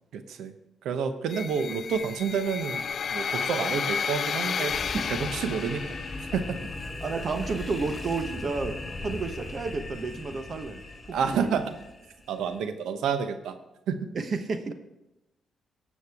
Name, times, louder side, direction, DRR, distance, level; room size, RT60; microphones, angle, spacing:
voice 1, 0.1-0.5 0.8-4.8 5.1-6.0 6.3-6.6 11.1-11.7 12.3-13.5 13.9-14.1, right 6 dB, 85° right, 9 dB, 0.8 m, -29 dB
sound 1, 1.3-6.3, left 6 dB, 60° left, 0.3 m, -32 dB
sound 2, 4.7-12.6, left 2 dB, 25° left, 3.3 m, -38 dB
voice 2, 7.0-11.6 14.1-14.7, right 4 dB, 50° right, 8 dB, 1.0 m, -31 dB
17.5 x 6.4 x 3.5 m, 0.94 s
cardioid pair, 70°, 0 cm